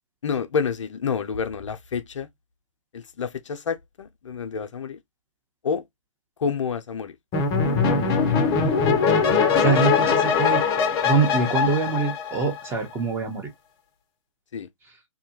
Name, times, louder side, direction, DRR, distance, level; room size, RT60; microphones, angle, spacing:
voice 1, 0.2-2.3 2.9-5.0 5.6-5.8 6.4-7.2 14.5-14.7, left 6 dB, 65° left, 0.5 m, -28 dB
sound 1, 7.3-12.8, left 5 dB, 25° left, 0.6 m, -21 dB
voice 2, 9.6-10.6 11.0-13.5, right 4 dB, 15° right, 0.8 m, -24 dB
2.7 x 2.2 x 2.7 m
figure-of-eight pair, 130°, 17 cm